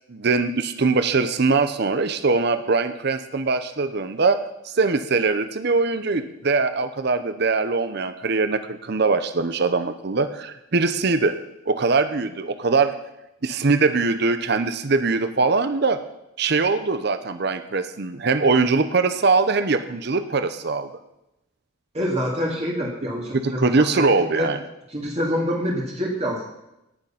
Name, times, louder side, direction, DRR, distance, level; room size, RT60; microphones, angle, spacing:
voice 1, 0.1-4.4 4.6-11.4 11.7-12.9 13.4-16.0 16.4-20.9 23.3-24.6, right 4 dB, 55° right, 10 dB, 0.7 m, -22 dB
voice 2, 21.9-24.5 24.9-26.5, equal, 30° right, -2 dB, 2.0 m, -26 dB
17.5 x 6.7 x 5.7 m, 0.88 s
head